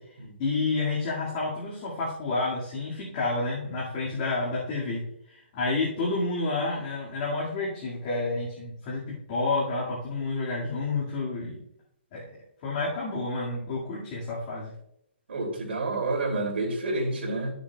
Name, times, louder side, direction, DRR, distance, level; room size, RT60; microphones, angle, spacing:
voice 1, 0.4-5.0 5.3-11.6 12.1-12.2 12.6-14.7, left 3 dB, 35° left, -6 dB, 2.1 m, -29 dB
voice 2, 15.3-17.5, right 2 dB, 70° right, -1 dB, 2.7 m, -28 dB
13.0 x 6.8 x 2.3 m, 0.75 s
hypercardioid pair, 155°, 6 cm